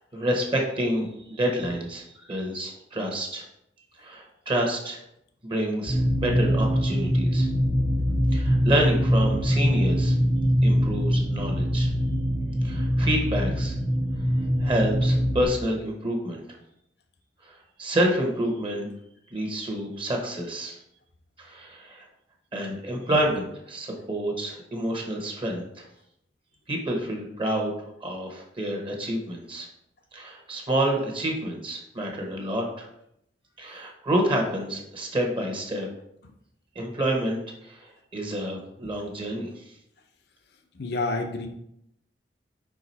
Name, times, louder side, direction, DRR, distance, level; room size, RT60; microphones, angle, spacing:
voice 1, 0.1-3.5 4.0-5.0 5.4-7.5 8.3-10.1 10.6-11.9 12.6-13.7 14.6-16.4 17.4-18.9 19.3-20.8 21.4-22.0 22.5-25.8 26.7-29.7 30.1-32.9 33.6-35.9 36.7-39.6, right 1 dB, 30° right, 1 dB, 1.0 m, -28 dB
sound 1, 5.9-15.4, equal, 10° left, 0.8 m, -23 dB
voice 2, 40.7-41.5, left 2 dB, 65° left, 5 dB, 0.7 m, -29 dB
4.9 x 4.7 x 4.1 m, 0.77 s
head